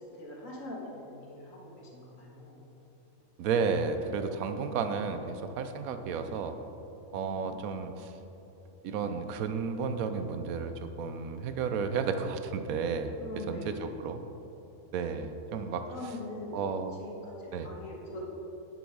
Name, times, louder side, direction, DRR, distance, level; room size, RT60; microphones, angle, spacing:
voice 1, 0.2-2.6 7.1-7.8 13.2-14.1 15.8-16.5 17.0-18.2, left 1 dB, 70° left, -2 dB, 1.9 m, -43 dB
voice 2, 3.4-6.6 7.1-8.1 8.8-13.1 13.5-14.2 14.9-15.9 16.5-17.0 17.5-17.7, right 5 dB, 90° right, 8 dB, 1.1 m, -32 dB
10.0 x 6.2 x 4.7 m, 3.0 s
omnidirectional pair, 1.4 m